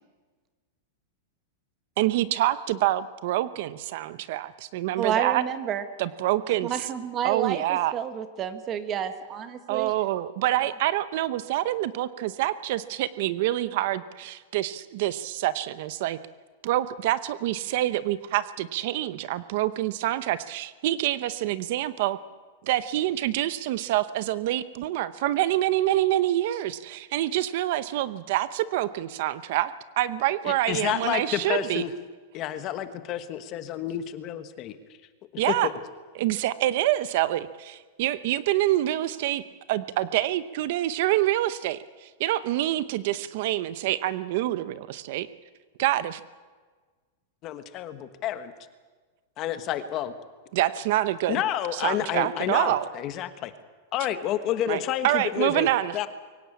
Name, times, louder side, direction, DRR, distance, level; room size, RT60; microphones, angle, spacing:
voice 1, 2.0-5.4 6.0-6.7 7.2-7.9 9.7-16.2 16.6-22.2 22.6-31.8 35.4-35.7 36.2-39.4 39.7-45.3 45.8-46.2 50.5-51.4 51.7-52.9 54.7-56.0, right 14 dB, 50° right, 14 dB, 0.8 m, -26 dB
voice 2, 5.0-5.8 6.6-9.9, right 8 dB, 25° right, 10 dB, 1.4 m, -30 dB
voice 3, 30.5-31.9 32.3-34.8 35.3-35.7 47.4-48.5 49.4-50.1 51.3-53.5 53.9-55.7 55.9-56.1, left 11 dB, 30° left, 10 dB, 1.3 m, -29 dB
23.5 x 17.5 x 8.7 m, 1.4 s
supercardioid pair, 165°, 0 cm